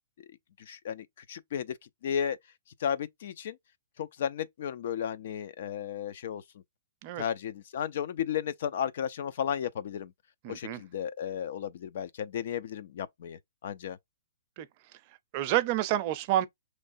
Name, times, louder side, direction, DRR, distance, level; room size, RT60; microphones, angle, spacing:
voice 1, 0.6-1.8 2.0-2.4 2.8-3.6 4.0-6.4 7.2-10.1 10.5-14.0, left 9 dB, 60° left, 0.5 m, -34 dB
voice 2, 10.4-10.8 14.6-14.7 15.3-16.5, right 13 dB, 40° right, 0.6 m, -28 dB
5.5 x 3.2 x 2.6 m
hypercardioid pair, 145°, 0 cm